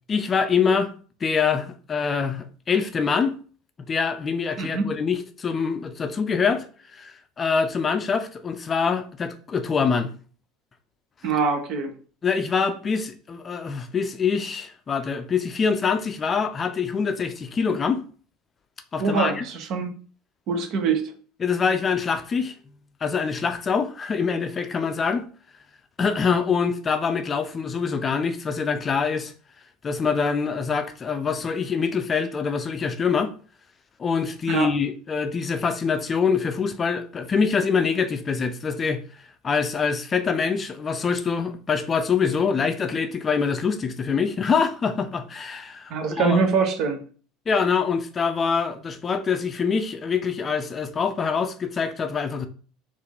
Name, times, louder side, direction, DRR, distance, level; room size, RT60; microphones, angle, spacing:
voice 1, 0.1-0.9 1.2-3.4 3.9-6.7 6.9-10.1 12.2-18.0 18.9-19.4 21.4-22.5 23.0-25.3 26.0-29.3 29.8-33.3 34.0-39.0 39.4-46.4 47.5-52.5, left 5 dB, 30° left, 0.5 m, -24 dB
voice 2, 4.6-4.9 11.2-11.9 19.0-19.9 20.5-21.1 34.5-34.7 45.9-47.0, right 5 dB, 50° right, 0.8 m, -24 dB
4.5 x 2.6 x 3.5 m
figure-of-eight pair, 70°, 0 cm